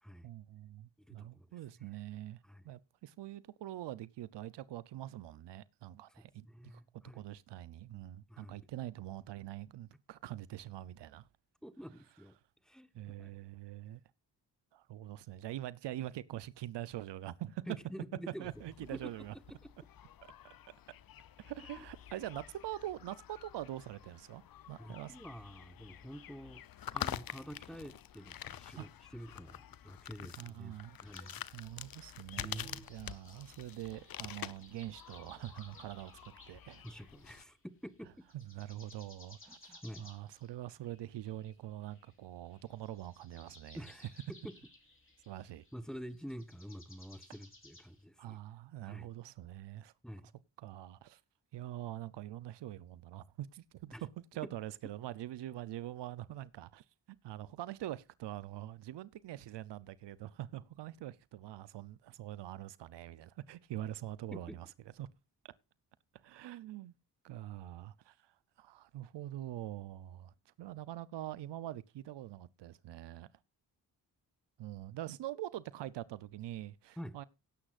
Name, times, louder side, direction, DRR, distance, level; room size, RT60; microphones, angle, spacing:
voice 1, 0.2-2.4 2.6-6.8 7.1-11.3 12.9-14.0 14.7-17.6 18.4-19.3 20.2-20.3 21.4-24.4 24.7-25.2 28.8-28.9 30.4-31.0 31.5-36.8 38.3-43.8 45.3-45.6 48.2-49.9 50.6-51.2 51.5-56.8 57.2-64.7 65.0-65.1 66.2-66.9 67.2-68.3 68.6-73.3 74.6-77.2, right 13 dB, 80° right, 0.7 m, -44 dB
voice 2, 1.0-1.5 1.8-1.9 2.4-2.6 6.2-7.2 8.3-8.6 11.6-12.3 12.6-12.9 13.2-13.4 17.7-18.5 18.9-19.1 21.8-21.9 24.8-26.6 26.9-31.4 32.4-32.9 36.8-38.3 39.5-40.1 43.7-44.0 44.3-44.5 45.7-48.4 48.9-49.1 50.0-50.3 53.9-54.0 54.4-54.5 64.3-64.6 77.0-77.2, equal, ahead, 1.1 m, -48 dB
sound 1, 18.4-37.4, left 10 dB, 55° left, 0.7 m, -48 dB
sound 2, 31.1-37.6 37.9-48.0, left 2 dB, 30° left, 4.1 m, -60 dB
17.5 x 9.9 x 2.5 m
cardioid pair, 60°, 42 cm